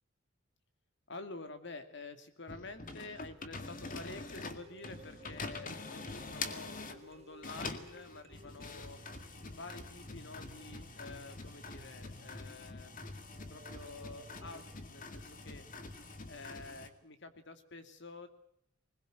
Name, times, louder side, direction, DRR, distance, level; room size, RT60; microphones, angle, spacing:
voice 1, 1.1-9.0 9.5-12.9 13.4-15.6 16.3-18.3, left 3 dB, 65° left, 9 dB, 2.5 m, -49 dB
sound 1, 2.5-7.0 7.4-16.9, left 3 dB, 45° left, 2.1 m, -45 dB
sound 2, 4.4-14.6, right 1 dB, 35° right, 1.4 m, -59 dB
21.0 x 20.5 x 7.9 m, 0.71 s
head